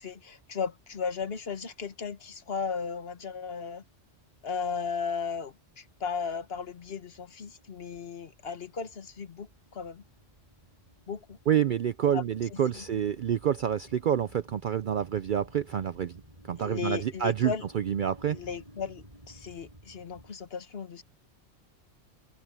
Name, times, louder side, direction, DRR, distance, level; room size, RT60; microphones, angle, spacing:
voice 1, 0.0-3.8 4.4-10.0 11.1-11.4 12.0-12.2 12.5-12.8 16.6-17.6 18.3-21.0, left 6 dB, 55° left, 1.4 m, -36 dB
sound 1, 5.9-20.3, right 1 dB, 30° right, 7.6 m, -55 dB
voice 2, 11.5-16.1 16.5-18.4, right 9 dB, 60° right, 0.5 m, -28 dB
omnidirectional pair, 1.3 m